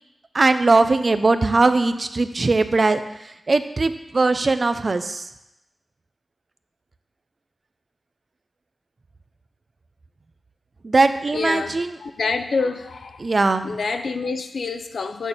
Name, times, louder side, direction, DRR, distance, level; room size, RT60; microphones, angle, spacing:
voice 1, 0.3-3.0 3.5-5.2 10.8-11.9 13.2-13.7, right 3 dB, 40° right, 10 dB, 0.5 m, -19 dB
voice 2, 11.3-13.3 13.6-15.3, left 4 dB, 75° left, 8 dB, 0.6 m, -27 dB
9.0 x 4.3 x 7.1 m, 0.90 s
wide cardioid pair, 130°, 0 cm